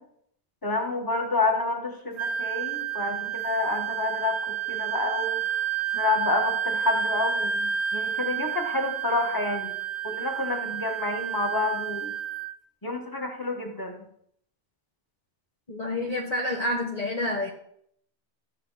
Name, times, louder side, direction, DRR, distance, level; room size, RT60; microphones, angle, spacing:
voice 1, 0.6-5.4 5.9-9.7 10.0-12.1 12.8-14.0, left 3 dB, 20° left, 2 dB, 1.8 m, -29 dB
Wind instrument woodwind instrument, 2.2-12.5, right 8 dB, 75° right, 1.1 m, -30 dB
voice 2, 15.7-17.5, left 1 dB, 35° left, -1 dB, 1.4 m, -28 dB
14.0 x 9.2 x 4.1 m, 0.70 s
omnidirectional pair, 1.1 m